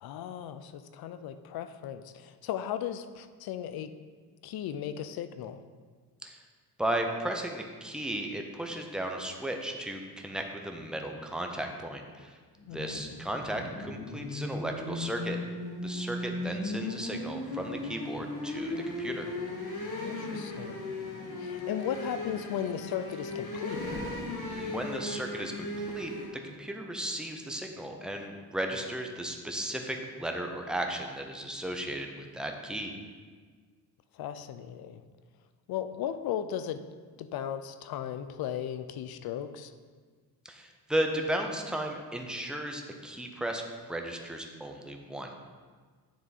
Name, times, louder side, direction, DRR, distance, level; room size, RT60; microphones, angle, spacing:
voice 1, 0.0-3.9 4.4-5.6 12.7-13.0 16.3-16.4 19.9-20.9 21.4-23.8 34.1-35.0 35.7-36.8 37.2-39.7, left 9 dB, 65° left, 11 dB, 0.5 m, -36 dB
voice 2, 6.8-12.4 12.7-15.4 15.8-19.3 24.5-26.1 26.4-32.9 40.4-43.6 43.9-45.3, right 1 dB, ahead, 2 dB, 0.6 m, -35 dB
sound 1, 12.6-26.3, left 2 dB, 50° left, 1.8 m, -37 dB
9.3 x 3.6 x 4.1 m, 1.5 s
cardioid pair, 115°, 39 cm